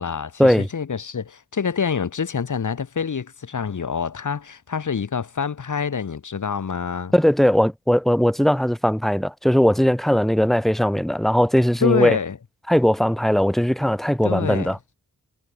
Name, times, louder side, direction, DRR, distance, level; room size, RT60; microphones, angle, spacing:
voice 1, 0.0-7.1 11.8-12.4 14.2-14.7, left 6 dB, 65° left, 4.7 m, -26 dB
voice 2, 7.1-12.2 12.7-14.8, equal, ahead, 1.6 m, -19 dB
wide cardioid pair, 165°, 32 cm